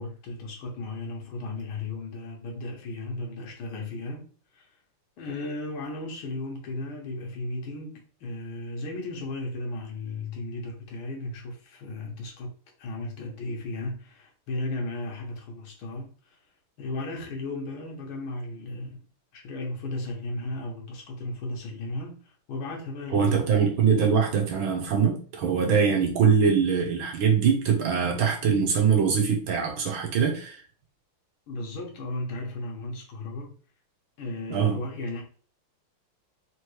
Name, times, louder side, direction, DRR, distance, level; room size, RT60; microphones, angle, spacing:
voice 1, 0.0-4.3 4.5-4.8 5.2-12.5 12.8-16.4 16.8-19.0 19.3-23.5 31.5-33.5 34.2-35.2, left 2 dB, 75° left, 1.9 m, -35 dB
voice 2, 23.1-30.6 34.5-34.8, right 6 dB, 70° right, 1.6 m, -23 dB
4.4 x 3.1 x 3.1 m
omnidirectional pair, 2.4 m